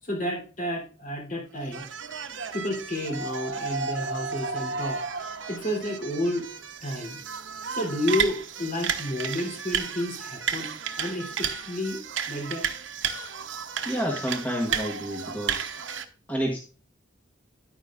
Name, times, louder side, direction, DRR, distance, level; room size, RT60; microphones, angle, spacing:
voice 1, 0.0-1.8 2.5-5.0 5.5-6.5 6.8-7.2 7.7-10.7 11.0-12.0 12.3-12.7, left 1 dB, 45° left, 2 dB, 3.4 m, -30 dB
sound 1, 1.6-16.0, right 6 dB, 75° right, 0.9 m, -33 dB
voice 2, 13.8-15.7 16.3-16.6, equal, 10° left, -1 dB, 1.3 m, -29 dB
11.0 x 9.3 x 2.5 m, 0.36 s
head